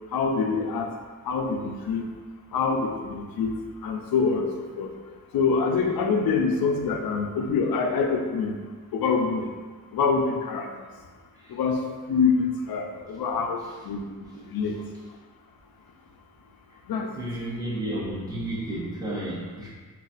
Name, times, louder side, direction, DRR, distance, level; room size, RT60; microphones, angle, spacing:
voice 1, 0.1-0.9 1.2-2.1 2.5-3.5 3.8-4.5 4.8-4.9 5.3-8.6 8.9-9.5 9.9-10.7 11.5-14.0 14.5-14.7 16.9-17.2, left 5 dB, 85° left, 3 dB, 0.5 m, -25 dB
voice 2, 17.2-19.7, right 1 dB, 10° right, -8 dB, 0.8 m, -32 dB
3.9 x 2.3 x 2.5 m, 1.4 s
wide cardioid pair, 165°, 35 cm